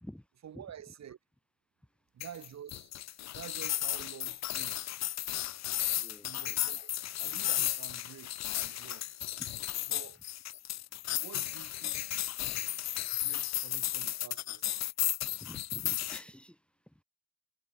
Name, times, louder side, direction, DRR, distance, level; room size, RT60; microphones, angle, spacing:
voice 1, 0.4-1.2 2.1-2.9 3.3-4.9 6.2-6.9 7.2-9.1 9.9-10.2 11.2-12.3 13.1-14.8, right 9 dB, 60° right, 4.7 m, -49 dB
sound 1, 2.2-16.2, left 13 dB, 60° left, 0.7 m, -34 dB
voice 2, 6.0-6.3 9.4-9.5 15.4-16.6 16.9-17.0, equal, 5° left, 2.5 m, -48 dB
cardioid pair, 90°, 30 cm